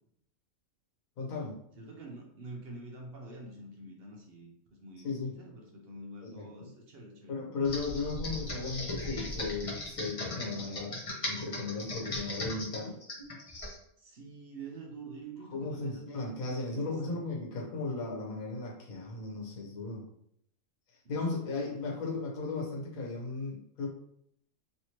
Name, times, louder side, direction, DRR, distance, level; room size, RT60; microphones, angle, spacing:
voice 1, 1.2-1.5 5.0-5.3 6.2-6.7 7.3-13.0 15.5-20.0 21.1-23.9, left 3 dB, 80° left, -2 dB, 1.4 m, -36 dB
voice 2, 1.8-7.4 14.0-17.2 21.0-22.1, right 2 dB, 55° right, 1 dB, 0.7 m, -47 dB
Computer keyboard, 7.6-13.8, left 2 dB, 30° left, 0.7 m, -38 dB
Bird, 7.6-10.1, left 1 dB, 85° right, 0.3 m, -44 dB
3.2 x 2.9 x 2.9 m, 0.71 s
omnidirectional pair, 1.4 m